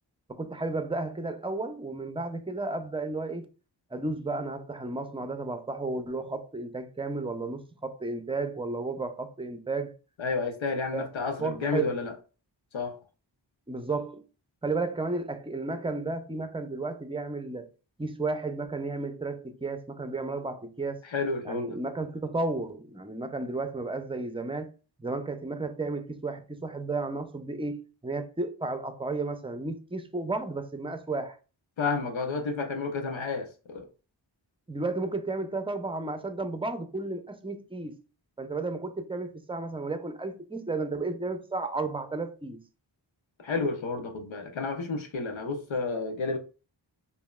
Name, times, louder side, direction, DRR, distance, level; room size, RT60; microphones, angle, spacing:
voice 1, 0.3-3.5 3.9-9.9 10.9-11.0 11.4-12.0 13.7-14.2 14.6-17.7 18.0-21.0 21.4-24.7 25.0-31.4 34.7-38.0 38.4-42.6, right 3 dB, 10° right, 0.6 m, -33 dB
voice 2, 10.2-12.1 12.7-13.0 21.0-21.8 31.8-33.9 43.4-46.4, left 4 dB, 85° left, 0.9 m, -31 dB
5.1 x 2.7 x 2.3 m
cardioid pair, 55°, 45 cm